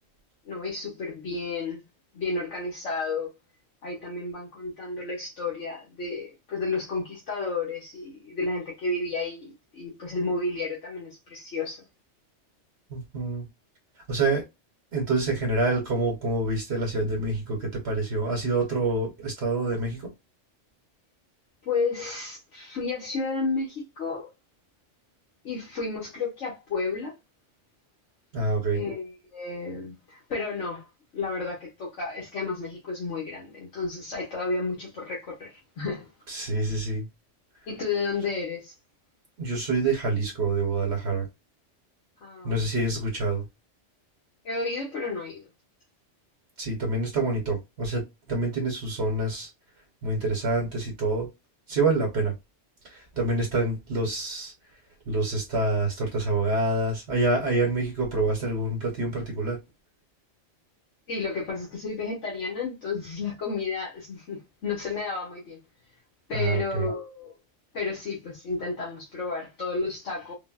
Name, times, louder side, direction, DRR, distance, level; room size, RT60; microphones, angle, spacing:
voice 1, 0.4-1.8 2.1-3.3 3.8-11.8 21.6-24.3 25.4-27.1 28.7-30.9 31.1-36.1 37.7-38.7 42.2-42.5 44.4-45.4 61.1-65.6 66.3-67.3 67.7-70.3, left 3 dB, 75° left, 1.3 m, -32 dB
voice 2, 12.9-13.4 14.1-14.4 14.9-20.1 28.3-28.8 36.3-37.1 39.4-41.3 42.4-43.5 46.6-49.5 50.0-51.3 51.7-52.3 52.9-54.5 55.1-59.6 66.3-66.9, right 2 dB, 65° right, 1.1 m, -27 dB
3.7 x 2.1 x 2.2 m
omnidirectional pair, 1.2 m